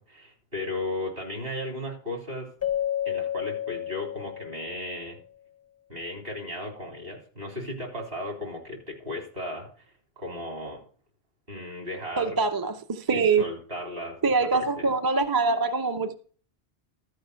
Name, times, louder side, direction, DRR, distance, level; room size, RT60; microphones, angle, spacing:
voice 1, 0.1-2.5 3.1-5.2 5.9-9.9 10.2-10.8 11.5-12.4 13.1-14.9, left 1 dB, 55° right, 4.2 m, -35 dB
Keyboard (musical), 2.6-5.1, left 10 dB, 25° left, 0.3 m, -31 dB
voice 2, 12.2-13.5 14.2-16.1, right 4 dB, 25° right, 0.6 m, -24 dB
13.0 x 5.1 x 6.8 m
omnidirectional pair, 1.1 m